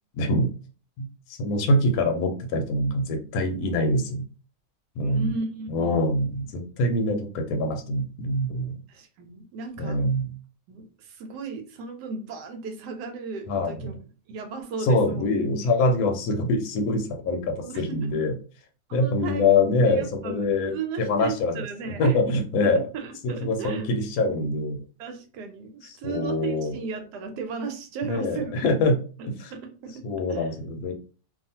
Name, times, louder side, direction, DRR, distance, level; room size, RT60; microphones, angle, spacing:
voice 1, 0.2-0.5 1.0-4.2 5.0-5.3 5.7-8.8 9.8-10.3 13.5-13.9 14.8-18.3 18.9-21.6 22.0-22.9 23.2-24.8 26.0-26.7 28.0-29.0 29.4-29.5 30.0-30.9, left 2 dB, 70° left, 3 dB, 1.0 m, -24 dB
voice 2, 5.0-6.1 8.9-10.1 10.7-13.9 14.3-15.3 17.6-18.0 18.9-20.4 20.7-22.2 22.6-23.9 25.0-28.5 29.5-30.0 30.3-30.5, right 5 dB, 80° right, 6 dB, 1.2 m, -35 dB
2.7 x 2.4 x 2.7 m, 0.37 s
omnidirectional pair, 1.8 m